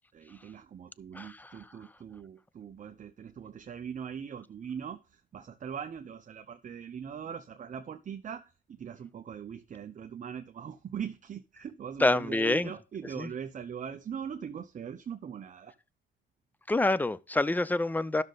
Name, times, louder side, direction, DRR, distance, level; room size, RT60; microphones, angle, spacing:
voice 1, 0.1-15.7, right 8 dB, 40° right, 0.6 m, -41 dB
voice 2, 1.1-1.5 12.0-12.7 13.2-13.3 16.7-18.2, left 2 dB, 10° left, 0.5 m, -27 dB
12.0 x 6.4 x 4.0 m
cardioid pair, 90°, 20 cm